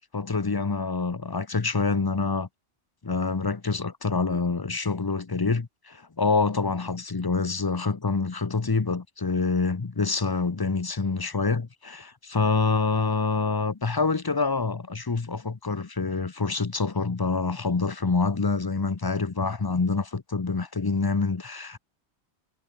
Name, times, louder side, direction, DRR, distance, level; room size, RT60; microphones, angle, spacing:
voice 1, 0.1-2.5 3.0-21.8, left 4 dB, 25° left, 0.6 m, -26 dB
omnidirectional pair, 1.2 m